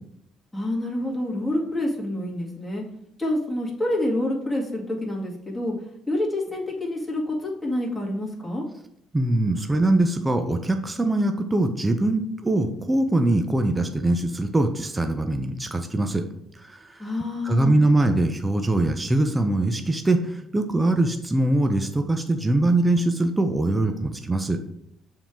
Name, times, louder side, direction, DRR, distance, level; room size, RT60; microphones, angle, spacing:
voice 1, 0.5-2.8 3.2-5.7 6.1-8.6 17.0-17.8, left 1 dB, 10° left, -3 dB, 2.0 m, -27 dB
voice 2, 9.1-16.2 16.5-17.1 17.4-24.6, right 2 dB, 15° right, 6 dB, 0.6 m, -22 dB
6.9 x 3.8 x 4.5 m, 0.73 s
cardioid pair, 95°, 0 cm